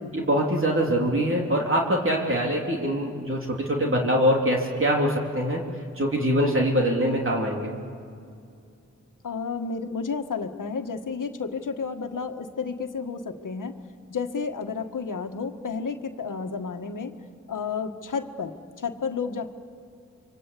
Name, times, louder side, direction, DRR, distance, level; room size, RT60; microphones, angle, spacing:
voice 1, 0.1-5.6 6.0-7.7, equal, 40° right, -1 dB, 3.2 m, -23 dB
voice 2, 9.2-13.8 14.1-17.1 17.5-19.5, left 5 dB, 85° left, 6 dB, 1.5 m, -31 dB
27.5 x 24.5 x 8.3 m, 2.4 s
wide cardioid pair, 75°, 31 cm